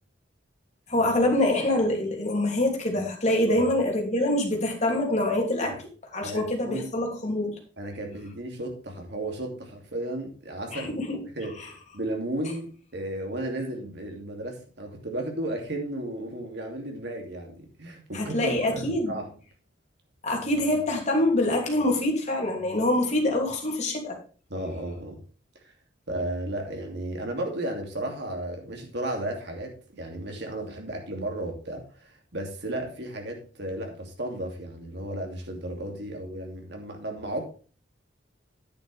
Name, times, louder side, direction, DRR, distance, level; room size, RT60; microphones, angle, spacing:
voice 1, 0.9-7.5 10.7-11.2 11.6-11.7 18.1-19.1 20.2-24.2, left 1 dB, 40° left, 1 dB, 2.9 m, -25 dB
voice 2, 6.2-6.9 7.8-11.0 11.4-11.7 11.9-12.7 12.9-19.3 24.5-25.2 25.6-25.7 26.1-37.5, right 1 dB, 60° right, 2 dB, 2.7 m, -34 dB
9.9 x 9.1 x 3.4 m, 0.36 s
head